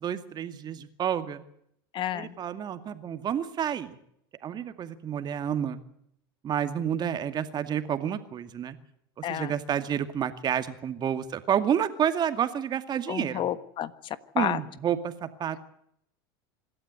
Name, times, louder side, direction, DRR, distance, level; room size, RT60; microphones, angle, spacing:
voice 1, 0.0-1.4 2.1-4.0 4.4-5.8 6.4-8.8 9.2-13.5 14.3-15.6, right 9 dB, 35° right, 9 dB, 2.3 m, -29 dB
voice 2, 1.9-2.4 9.2-9.5 13.1-14.6, left 11 dB, 45° left, 14 dB, 1.5 m, -31 dB
26.0 x 12.5 x 9.7 m, 0.72 s
hypercardioid pair, 100°, 12 cm